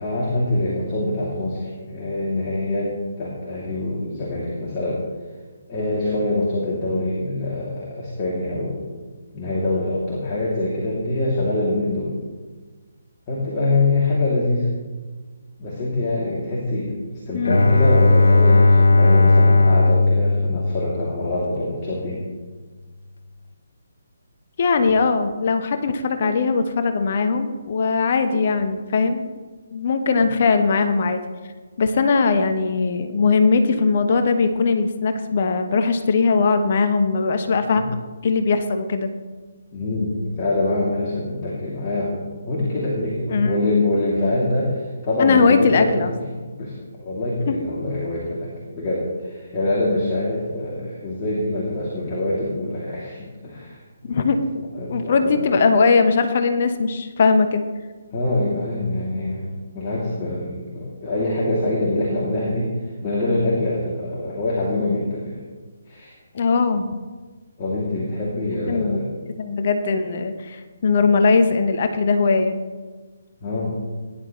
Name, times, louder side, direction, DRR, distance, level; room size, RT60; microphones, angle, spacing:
voice 1, 0.0-5.0 5.7-8.9 9.3-12.2 13.3-14.7 15.6-22.2 30.2-30.3 37.8-37.9 39.7-54.1 54.7-55.5 58.1-62.7 63.0-65.4 65.8-66.1 67.6-69.1 73.4-73.7, left 2 dB, 25° left, -6 dB, 2.6 m, -24 dB
voice 2, 17.3-17.7 24.6-29.3 29.7-31.2 31.8-37.9 38.2-39.1 43.3-43.6 45.2-46.1 47.5-47.6 54.1-54.6 54.9-57.6 66.3-66.9 68.7-69.0 69.4-72.6, left 4 dB, 45° left, 8 dB, 0.9 m, -20 dB
Bowed string instrument, 17.4-21.4, left 2 dB, 70° left, 0.6 m, -16 dB
17.0 x 10.5 x 3.1 m, 1.4 s
figure-of-eight pair, 140°, 0 cm